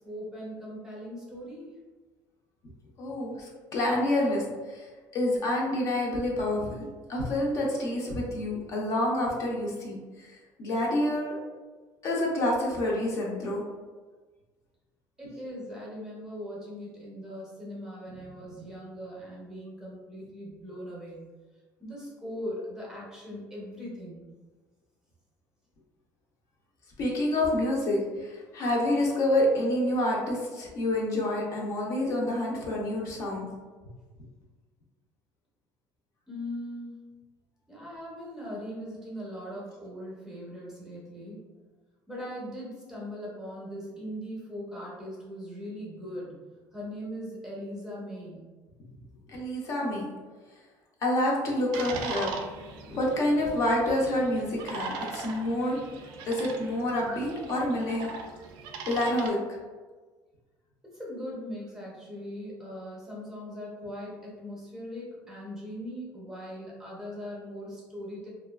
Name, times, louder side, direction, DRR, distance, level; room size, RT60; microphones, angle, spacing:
voice 1, 0.0-1.8 15.2-21.3 21.8-24.3 36.3-37.0 37.7-41.5 42.1-46.4 46.7-48.5 60.8-68.3, equal, 10° right, -5 dB, 0.6 m, -40 dB
voice 2, 3.0-4.9 5.1-11.4 12.0-13.6 27.0-33.4 49.3-50.1 51.0-52.3 52.9-55.8 56.3-58.1 58.9-59.4, left 1 dB, 45° left, -3 dB, 0.5 m, -28 dB
sound 1, 51.7-59.3, right 4 dB, 85° right, 0.4 m, -40 dB
2.6 x 2.3 x 2.2 m, 1.3 s
cardioid pair, 160°, 8 cm